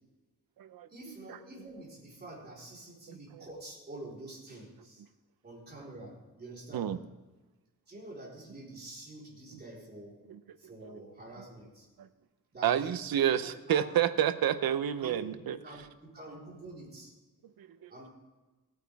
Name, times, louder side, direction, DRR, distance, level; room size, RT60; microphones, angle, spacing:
voice 1, 0.9-5.0 5.4-7.0 7.9-10.2 10.6-11.9 12.5-13.9 14.6-17.1 17.9-18.1, right 2 dB, 25° right, -4 dB, 4.0 m, -47 dB
voice 2, 12.6-15.6 17.6-17.9, right 10 dB, 85° right, 12 dB, 0.8 m, -29 dB
16.5 x 9.0 x 3.5 m, 1.2 s
wide cardioid pair, 145°, 35 cm